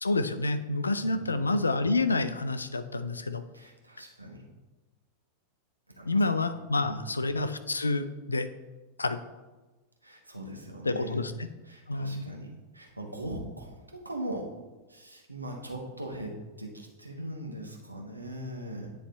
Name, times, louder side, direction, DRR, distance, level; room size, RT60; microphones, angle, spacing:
voice 1, 0.0-3.4 6.1-8.5 9.0-9.2 10.8-11.3 11.9-12.3, left 2 dB, 80° left, 11 dB, 0.4 m, -28 dB
voice 2, 1.0-1.4 3.5-4.4 6.0-6.4 6.7-7.1 10.0-11.3 11.6-14.5 14.9-18.9, right 1 dB, 85° right, 0 dB, 1.1 m, -40 dB
9.6 x 3.2 x 4.1 m, 1.2 s
figure-of-eight pair, 90°, 0 cm